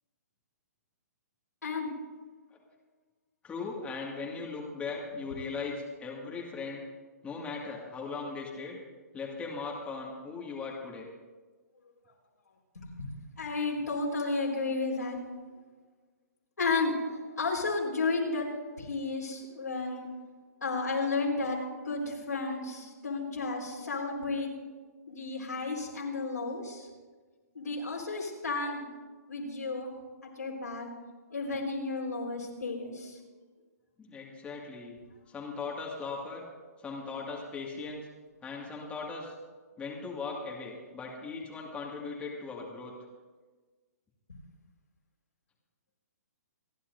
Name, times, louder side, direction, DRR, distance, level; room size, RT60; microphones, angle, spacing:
voice 1, 1.6-1.9 12.7-15.2 16.6-18.5 18.8-20.1 20.6-24.5 25.1-26.9 27.5-28.9 29.3-29.9 30.4-30.9 31.3-33.2, left 3 dB, 85° left, -2 dB, 4.4 m, -32 dB
voice 2, 3.4-6.9 7.2-8.8 9.1-11.1 34.0-35.0 35.3-36.4 36.8-38.1 38.4-39.3 39.8-42.9, left 4 dB, 15° left, -2 dB, 2.1 m, -38 dB
27.5 x 11.0 x 2.7 m, 1.4 s
hypercardioid pair, 130°, 9 cm